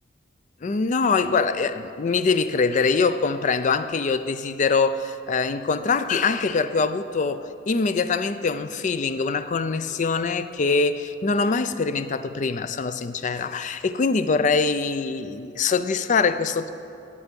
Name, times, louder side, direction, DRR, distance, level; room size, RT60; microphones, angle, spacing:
voice 1, 0.6-16.7, left 4 dB, 40° left, 0.4 m, -23 dB
12.5 x 8.9 x 5.2 m
head